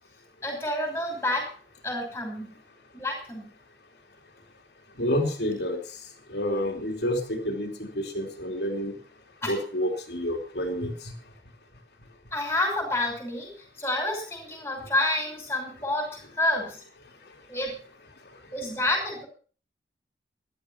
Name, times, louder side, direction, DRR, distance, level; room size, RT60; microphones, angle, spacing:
voice 1, 0.4-1.5 1.8-2.5 2.9-3.5 9.4-9.6 12.3-13.5 13.8-16.8 17.5-17.8 18.5-19.3, left 1 dB, 15° left, 2 dB, 5.7 m, -29 dB
voice 2, 5.0-5.8 6.3-8.9 9.5-11.1, equal, 70° left, 2 dB, 3.0 m, -29 dB
14.5 x 12.0 x 5.7 m, 0.41 s
head